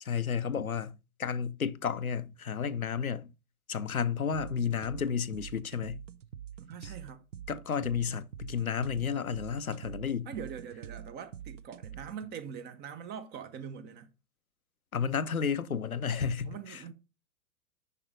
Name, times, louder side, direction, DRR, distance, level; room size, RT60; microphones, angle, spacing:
voice 1, 0.0-3.3 3.7-6.1 6.8-6.9 7.5-10.3 14.9-16.9, left 6 dB, 90° left, 0.6 m, -32 dB
sound 1, 4.3-12.3, right 9 dB, 65° right, 0.7 m, -46 dB
voice 2, 6.6-7.2 10.2-14.1 16.4-16.9, right 7 dB, 25° right, 1.0 m, -43 dB
6.7 x 5.6 x 5.1 m
figure-of-eight pair, 105°, 41 cm